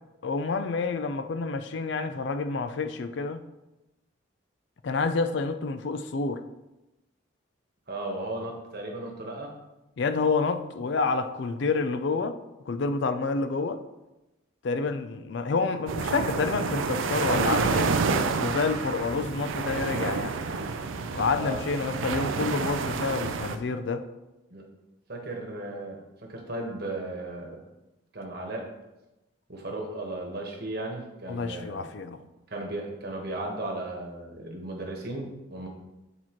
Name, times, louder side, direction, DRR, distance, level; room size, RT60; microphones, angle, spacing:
voice 1, 0.2-3.4 4.8-6.4 10.0-12.4 12.7-13.8 14.6-18.0 18.4-20.4 21.1-24.0 31.3-32.2, left 4 dB, 60° left, 10 dB, 0.4 m, -28 dB
voice 2, 7.9-9.5 21.3-21.6 24.5-24.6 25.1-27.6 28.1-28.7 29.5-31.8 32.5-35.7, right 2 dB, 50° right, 1 dB, 1.3 m, -35 dB
sound 1, 15.9-23.6, right 4 dB, 80° right, 0.5 m, -29 dB
8.5 x 4.3 x 3.0 m, 0.98 s
head